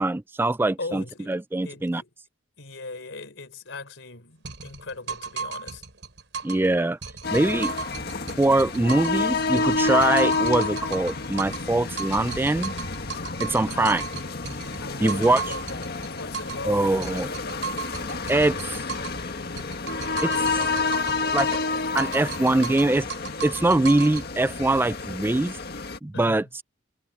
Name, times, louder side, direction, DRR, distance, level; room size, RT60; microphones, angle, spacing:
voice 1, 0.0-2.0 6.4-7.0 7.3-7.7 8.4-12.7 13.4-14.0 15.0-15.4 16.6-17.3 18.3-18.8 20.2-20.6 21.3-21.6 21.9-23.1 23.4-25.6 26.0-26.4, right 2 dB, 10° right, 0.3 m, -23 dB
voice 2, 0.8-1.3 1.6-2.1 2.6-5.8 13.6-13.9 14.8-16.8 26.1-26.5, left 3 dB, 75° left, 4.4 m, -39 dB
sound 1, 4.4-6.7 7.0-9.2 9.6-11.7 12.0-16.7 17.0-19.2 19.6-21.7 22.0-24.3, right 5 dB, 70° right, 6.7 m, -36 dB
sound 2, 7.2-26.0, left 4 dB, 55° left, 1.8 m, -29 dB
head